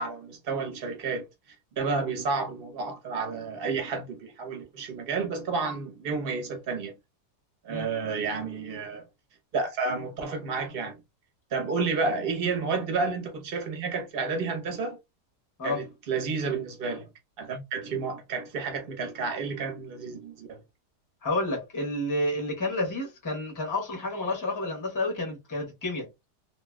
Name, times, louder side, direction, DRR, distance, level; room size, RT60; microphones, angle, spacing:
voice 1, 0.0-6.9 7.6-9.1 9.5-11.0 11.5-15.0 15.6-17.1 17.4-20.6, right 4 dB, 40° right, 0.9 m, -31 dB
voice 2, 21.2-26.1, left 2 dB, 15° left, 0.8 m, -30 dB
2.9 x 2.8 x 2.2 m
omnidirectional pair, 1.8 m